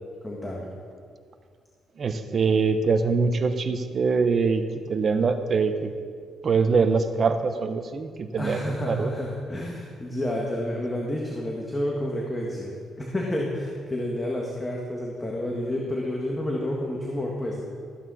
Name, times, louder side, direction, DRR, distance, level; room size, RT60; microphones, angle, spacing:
voice 1, 0.2-0.7 8.4-12.7 13.0-17.6, left 1 dB, 15° left, -2 dB, 1.7 m, -30 dB
voice 2, 2.0-4.6 4.9-5.9 6.4-9.1, right 4 dB, 45° right, 9 dB, 0.9 m, -23 dB
14.5 x 9.0 x 4.2 m, 2.1 s
cardioid pair, 90°, 0 cm